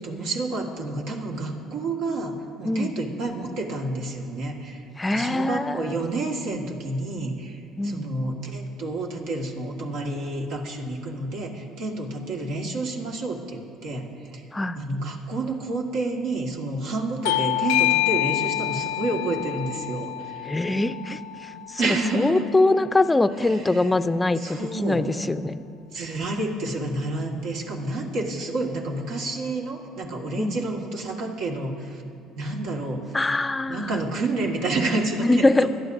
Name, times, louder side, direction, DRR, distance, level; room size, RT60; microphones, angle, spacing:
voice 1, 0.0-14.4 14.8-20.5 21.8-22.5 23.4-23.9 24.4-25.0 25.9-32.0 32.4-33.2 33.7-35.7, right 2 dB, 75° right, 0 dB, 1.6 m, -29 dB
voice 2, 5.0-6.0 7.8-8.1 14.5-14.8 20.5-25.6 30.4-30.6 33.1-34.0 35.2-35.7, left 2 dB, 15° left, 12 dB, 0.5 m, -23 dB
Bell / Doorbell, 17.3-22.4, left 15 dB, 85° left, 0.3 m, -27 dB
22.0 x 11.0 x 2.6 m, 2.4 s
supercardioid pair, 80°, 0 cm